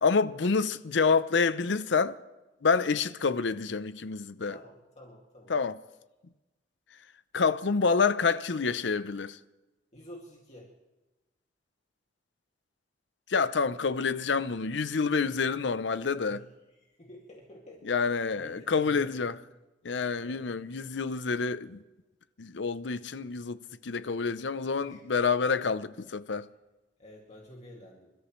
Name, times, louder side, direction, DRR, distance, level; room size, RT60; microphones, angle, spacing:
voice 1, 0.0-2.2 2.6-4.6 5.5-5.8 7.3-9.4 13.3-16.4 17.8-19.4 19.8-21.8 22.4-26.5, left 5 dB, 70° left, 0.7 m, -28 dB
voice 2, 4.5-5.6 9.9-10.7 16.3-16.4 16.7-19.4 20.2-20.4 24.8-25.1 27.0-28.1, equal, 40° left, 2.4 m, -50 dB
28.0 x 13.5 x 3.2 m
head